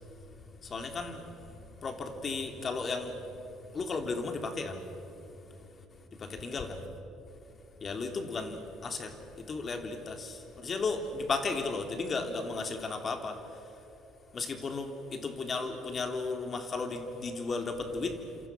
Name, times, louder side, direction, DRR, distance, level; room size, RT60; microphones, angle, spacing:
voice 1, 0.6-1.5 1.8-3.2 3.7-4.8 6.2-6.8 7.8-13.4 14.3-18.2, left 3 dB, 40° left, 5 dB, 3.5 m, -34 dB
29.5 x 27.0 x 6.3 m, 2.9 s
hypercardioid pair, 65°, 0 cm